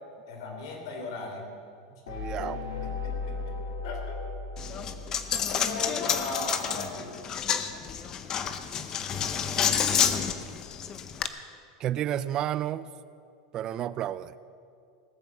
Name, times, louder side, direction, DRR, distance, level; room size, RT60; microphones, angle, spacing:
voice 1, 0.3-1.5 2.4-2.5 2.8-3.6 3.8-4.3 5.5-7.2, left 3 dB, 70° left, 2 dB, 3.4 m, -37 dB
sound 1, 2.1-5.8, left 4 dB, 90° left, 1.6 m, -36 dB
voice 2, 2.1-2.6 11.8-12.9 13.5-14.3, right 11 dB, 25° right, 16 dB, 0.4 m, -31 dB
Coin (dropping), 4.6-11.3, left 8 dB, 25° left, 0.6 m, -29 dB
19.0 x 8.1 x 7.4 m, 2.4 s
supercardioid pair, 175°, 3 cm